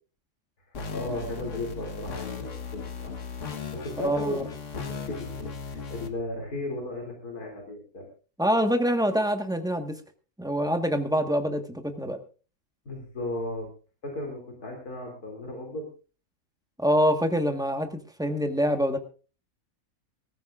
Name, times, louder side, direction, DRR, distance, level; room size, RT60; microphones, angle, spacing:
voice 1, 0.6-3.2 3.7-4.4 4.7-8.1 12.8-13.7 14.0-15.9, left 1 dB, 85° left, 1 dB, 3.4 m, -35 dB
sound 1, 0.7-6.1, left 5 dB, 55° left, 1.6 m, -37 dB
voice 2, 4.0-4.3 8.4-9.9 10.4-12.2 16.8-19.0, equal, 5° right, 5 dB, 1.3 m, -25 dB
24.5 x 14.0 x 2.5 m, 0.36 s
omnidirectional pair, 1.6 m